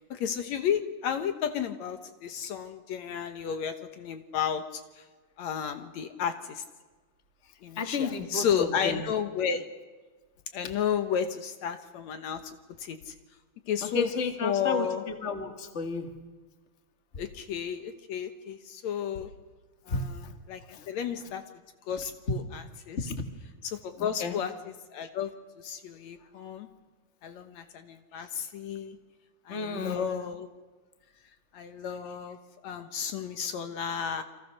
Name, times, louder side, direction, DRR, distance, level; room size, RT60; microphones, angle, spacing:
voice 1, 0.1-4.8 5.4-6.6 7.6-9.6 10.5-13.1 13.7-14.1 14.4-15.0 17.2-19.3 19.9-20.2 20.5-20.6 20.9-21.4 21.9-23.0 23.6-24.5 24.9-26.7 27.2-29.0 29.5-30.5 31.5-32.4 32.6-34.2, left 8 dB, 70° left, 8 dB, 2.3 m, -32 dB
voice 2, 7.8-9.1 13.8-16.1 19.9-20.3 20.7-20.9 23.0-23.3 24.0-24.4 29.5-30.0, left 4 dB, 25° left, 5 dB, 1.8 m, -32 dB
29.0 x 25.0 x 6.6 m, 1.3 s
omnidirectional pair, 3.4 m